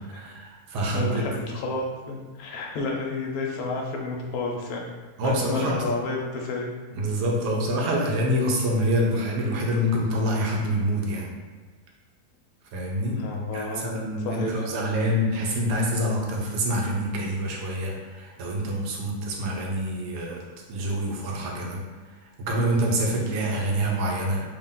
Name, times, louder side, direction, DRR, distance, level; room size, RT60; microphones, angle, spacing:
voice 1, 0.1-1.3 5.2-6.0 6.9-11.3 12.7-13.2 13.5-20.4 20.7-21.8 22.4-24.4, equal, 75° right, -1 dB, 1.3 m, -26 dB
voice 2, 0.9-4.9 5.2-6.7 13.1-14.7, left 3 dB, 65° left, -1 dB, 1.0 m, -31 dB
3.5 x 2.4 x 3.7 m, 1.3 s
omnidirectional pair, 1.8 m